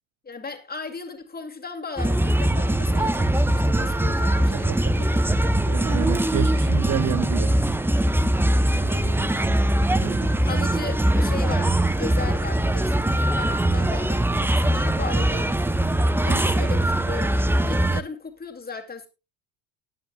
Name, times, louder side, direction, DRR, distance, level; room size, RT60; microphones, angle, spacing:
voice 1, 0.2-4.8 8.6-9.6 10.4-15.7 16.2-19.1, left 4 dB, 20° left, 2.5 m, -36 dB
sound 1, 2.0-18.0, right 1 dB, 5° right, 0.7 m, -21 dB
voice 2, 4.5-5.1 5.4-7.6 9.9-10.3 16.3-16.4, right 14 dB, 45° right, 0.5 m, -30 dB
19.0 x 9.2 x 2.3 m
supercardioid pair, 80°, 44 cm